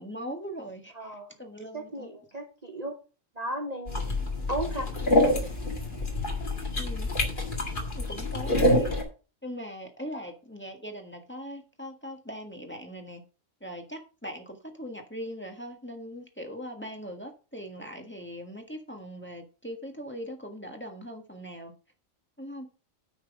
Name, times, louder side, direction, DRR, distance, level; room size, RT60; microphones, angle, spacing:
voice 1, 0.0-2.1 6.8-7.1 8.0-8.9 9.4-13.2 13.6-21.7 22.4-22.7, equal, 10° left, 1.5 m, -40 dB
voice 2, 0.9-1.3 1.7-3.0 3.4-4.0 4.5-4.9 10.1-10.2, right 1 dB, 35° right, 1.1 m, -35 dB
sound 1, 3.9-9.0, left 1 dB, 40° left, 2.3 m, -26 dB
9.4 x 6.1 x 4.9 m
omnidirectional pair, 1.3 m